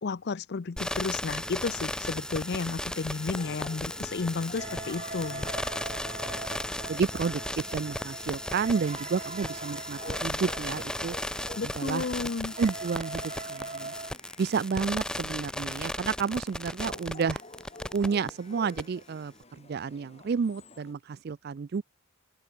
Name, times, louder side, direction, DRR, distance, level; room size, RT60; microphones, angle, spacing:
voice 1, 0.0-5.5 11.6-12.5, left 4 dB, 50° left, 0.5 m, -32 dB
sound 1, 0.8-18.3 18.7-18.8, left 1 dB, 5° left, 0.8 m, -35 dB
sound 2, 2.7-20.9, left 2 dB, 30° left, 5.5 m, -50 dB
sound 3, 4.6-14.1, right 3 dB, 30° right, 1.5 m, -42 dB
voice 2, 6.9-11.2 11.6-13.9 14.4-17.4 17.9-21.8, right 5 dB, 45° right, 0.3 m, -31 dB
open air
head